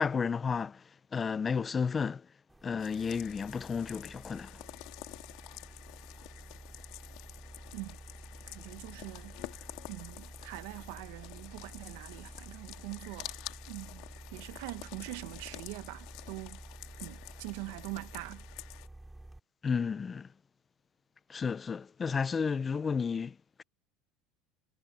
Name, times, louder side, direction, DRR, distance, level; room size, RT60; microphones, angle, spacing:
voice 1, 0.0-2.3 2.6-4.6 19.6-20.3 21.3-23.6, left 5 dB, 20° left, 0.4 m, -32 dB
sound 1, 2.5-19.4, right 1 dB, 5° right, 3.2 m, -50 dB
sound 2, 2.8-18.9, left 20 dB, 65° left, 2.6 m, -49 dB
voice 2, 8.5-9.4 9.9-13.4 13.7-16.6 17.0-18.5, right 23 dB, 80° right, 1.0 m, -43 dB
cardioid pair, 145°, 0 cm